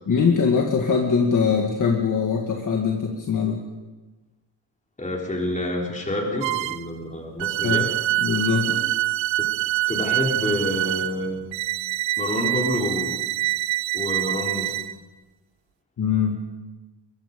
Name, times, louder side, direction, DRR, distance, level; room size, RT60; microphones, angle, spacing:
voice 1, 0.1-3.6 7.6-7.9 8.2-8.8 16.0-16.4, left 5 dB, 40° left, 1 dB, 2.0 m, -22 dB
voice 2, 5.0-7.9 9.4-9.5 9.9-11.4 12.2-13.2 13.9-14.8, left 1 dB, 15° left, 0 dB, 3.7 m, -28 dB
sound 1, 6.4-6.9 7.4-14.9, right 16 dB, 80° right, 0.7 m, -25 dB
23.0 x 22.5 x 5.3 m, 1.2 s
wide cardioid pair, 165°, 46 cm